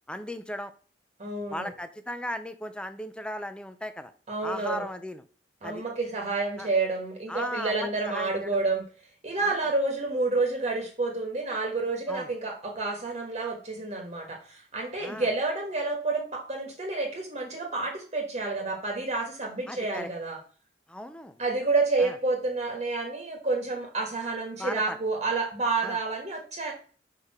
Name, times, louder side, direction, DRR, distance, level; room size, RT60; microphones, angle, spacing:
voice 1, 0.1-0.7 1.5-4.1 4.4-5.2 5.6-5.8 6.6-6.7 7.3-8.6 9.4-9.6 12.1-12.3 15.0-15.3 19.7-20.1 20.9-21.4 22.0-22.1 24.6-25.0 25.8-26.0, left 1 dB, 5° left, 11 dB, 0.5 m, -36 dB
voice 2, 1.2-1.7 4.3-4.9 5.6-8.8 9.2-20.4 21.4-26.7, right 3 dB, 35° right, 1 dB, 1.4 m, -29 dB
5.1 x 4.6 x 4.8 m, 0.39 s
head